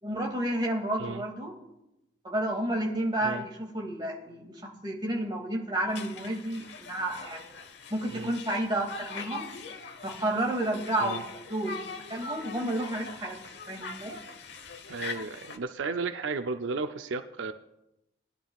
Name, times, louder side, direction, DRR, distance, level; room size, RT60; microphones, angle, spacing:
voice 1, 0.0-1.5 2.2-7.5 7.9-9.5 10.0-11.2 11.5-11.8 12.1-13.4 13.7-14.2, right 1 dB, 25° right, 0 dB, 2.3 m, -31 dB
Conversation, 5.9-15.6, left 4 dB, 65° left, 1.0 m, -42 dB
voice 2, 14.9-17.5, right 4 dB, 85° right, 8 dB, 0.5 m, -34 dB
21.0 x 11.0 x 2.4 m, 0.88 s
head